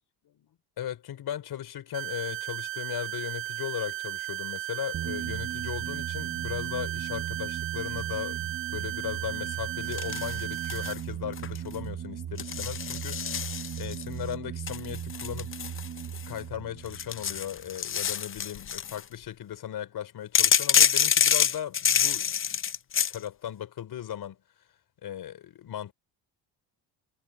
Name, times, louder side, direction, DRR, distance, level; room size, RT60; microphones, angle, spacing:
voice 1, 0.8-13.4 13.8-15.6 16.1-22.6 23.1-24.4 25.0-25.9, left 10 dB, 55° left, 3.9 m, -37 dB
sound 1, 1.9-10.9, right 16 dB, 85° right, 7.1 m, -35 dB
sound 2, 4.9-18.2, right 9 dB, 40° right, 1.2 m, -38 dB
sound 3, 9.9-11.0 11.3-11.7 12.4-14.0 14.7-16.4 16.9-19.0 20.3-23.2, left 8 dB, 30° left, 0.6 m, -26 dB
cardioid pair, 125°, 44 cm